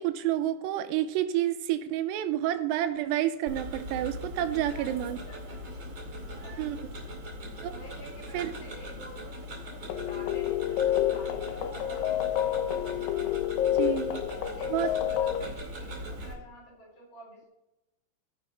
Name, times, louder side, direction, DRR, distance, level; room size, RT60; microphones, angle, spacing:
voice 1, 0.0-5.2 6.6-6.8 7.6-7.7 8.3-8.5 13.8-14.2 14.7-14.9, right 12 dB, 90° right, 2.7 m, -29 dB
Tick-tock, 3.5-16.3, equal, 35° right, 1.6 m, -40 dB
voice 2, 4.4-5.7 6.0-7.2 7.7-12.9 13.8-14.0 14.5-17.5, left 1 dB, 45° left, 4.9 m, -49 dB
sound 1, 9.9-15.4, left 11 dB, 80° left, 2.1 m, -29 dB
15.0 x 5.1 x 4.5 m
omnidirectional pair, 4.8 m